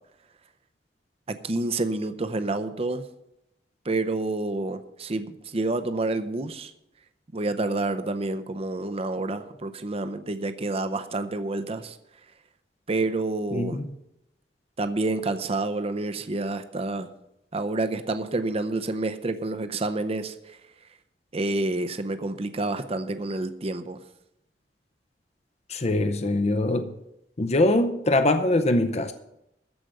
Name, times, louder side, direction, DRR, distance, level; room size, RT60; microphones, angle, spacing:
voice 1, 1.3-3.0 3.8-6.7 7.3-12.0 12.9-13.8 14.8-17.1 17.5-20.6 21.3-24.0, right 2 dB, 35° right, 0.7 m, -28 dB
voice 2, 13.5-13.9 25.7-26.9 27.4-29.1, left 2 dB, 40° left, 0.7 m, -23 dB
14.0 x 5.1 x 9.1 m
head